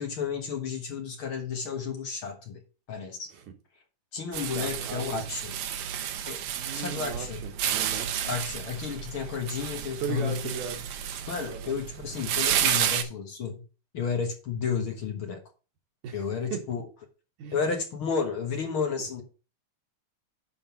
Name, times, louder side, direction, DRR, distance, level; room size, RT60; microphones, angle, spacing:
voice 1, 0.0-2.6 2.9-3.3 4.1-5.6 6.3-6.4 6.7-7.4 8.2-10.4 11.3-13.6 13.9-15.4 16.1-16.8 17.5-19.2, left 6 dB, 55° left, 1.8 m, -32 dB
sound 1, 4.3-13.0, right 9 dB, 70° right, 2.0 m, -31 dB
voice 2, 4.5-5.2 6.6-8.1 10.0-10.8 11.5-11.8 16.0-16.2 16.5-16.6 17.4-17.7 19.0-19.1, right 6 dB, 90° right, 3.2 m, -37 dB
10.5 x 3.9 x 5.9 m
omnidirectional pair, 3.5 m